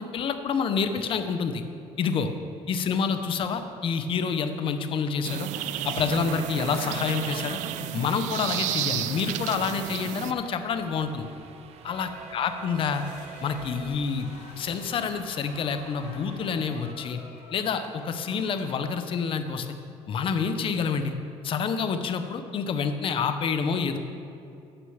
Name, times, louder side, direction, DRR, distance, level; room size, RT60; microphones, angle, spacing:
voice 1, 0.0-1.6 2.0-2.3 2.7-5.5 5.8-7.6 7.9-11.3 11.8-13.0 13.4-14.3 14.6-17.2 17.5-19.7 20.1-21.1 21.4-24.0, left 6 dB, 45° left, 9 dB, 0.7 m, -28 dB
sound 1, 5.2-10.3, right 12 dB, 80° right, 0.5 m, -32 dB
sound 2, 5.6-16.9, right 5 dB, 55° right, 0.7 m, -46 dB
sound 3, 12.8-18.8, left 4 dB, 85° left, 1.4 m, -49 dB
9.4 x 6.3 x 7.1 m, 2.7 s
cardioid pair, 140°, 12 cm